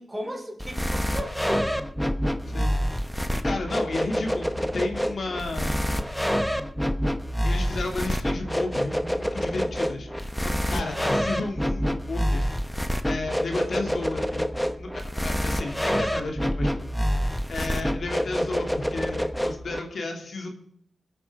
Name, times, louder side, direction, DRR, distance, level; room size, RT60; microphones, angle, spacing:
voice 1, 0.0-1.7 10.7-11.1 17.5-17.9, equal, 15° right, 0 dB, 5.4 m, -36 dB
sound 1, 0.6-19.8, equal, 5° left, 1.2 m, -27 dB
voice 2, 2.5-2.8 3.4-6.0 7.4-14.5 14.8-16.9 17.2-20.5, left 3 dB, 65° left, 3 dB, 2.7 m, -33 dB
21.5 x 8.7 x 4.8 m, 0.68 s
cardioid pair, 55°, 0 cm